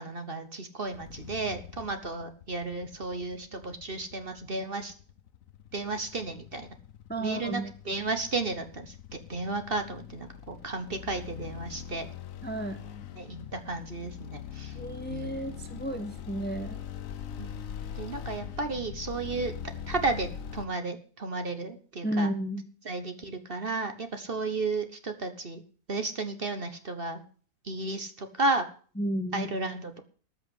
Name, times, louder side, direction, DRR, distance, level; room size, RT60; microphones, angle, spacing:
voice 1, 0.0-4.9 5.7-6.7 7.2-12.1 13.2-14.8 15.1-15.3 17.4-17.6 17.9-19.5 19.9-22.3 22.8-25.6 25.9-27.2 27.6-28.7 29.3-30.0, right 3 dB, 40° right, 8 dB, 1.4 m, -33 dB
sound 1, 0.9-20.7, left 8 dB, 65° left, 1.2 m, -42 dB
voice 2, 7.1-7.7 12.4-12.8 14.7-16.8 22.0-22.6 29.0-29.5, right 1 dB, 10° left, 9 dB, 1.0 m, -32 dB
13.5 x 6.2 x 9.6 m, 0.43 s
omnidirectional pair, 1.5 m